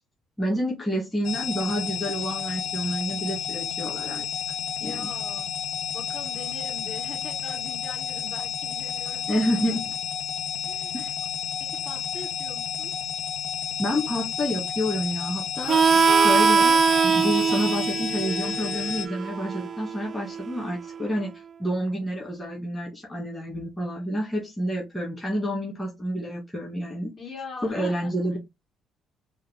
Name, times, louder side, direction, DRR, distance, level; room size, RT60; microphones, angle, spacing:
voice 1, 0.4-4.3 4.8-5.1 9.3-9.9 10.9-11.1 13.8-21.3 21.6-27.2 27.6-28.4, equal, 20° left, 2.1 m, -29 dB
sound 1, 1.2-19.1, left 8 dB, 70° left, 0.6 m, -31 dB
voice 2, 4.8-5.5 5.9-9.4 10.6-10.9 11.6-12.9 27.2-28.4, left 4 dB, 50° left, 3.0 m, -41 dB
Harmonica, 15.7-21.0, right 5 dB, 45° right, 0.4 m, -22 dB
4.7 x 2.6 x 3.6 m
hypercardioid pair, 55°, 0 cm